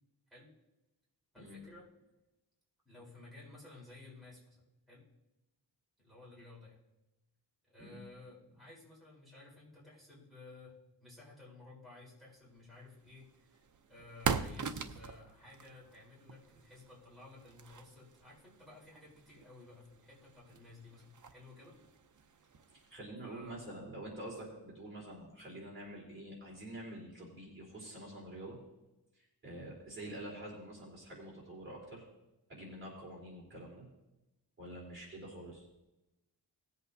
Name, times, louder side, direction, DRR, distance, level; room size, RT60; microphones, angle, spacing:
voice 1, 1.3-1.9 2.8-4.6 4.9-5.0 6.0-6.8 7.7-21.8 23.2-23.6, left 2 dB, ahead, -7 dB, 3.9 m, -55 dB
sound 1, 12.7-23.0, right 6 dB, 45° right, 0.7 m, -43 dB
voice 2, 22.7-28.6 29.1-32.0 32.5-33.8 34.6-35.6, right 1 dB, 25° right, -6 dB, 3.8 m, -47 dB
19.0 x 8.2 x 2.7 m, 0.97 s
wide cardioid pair, 180°, 43 cm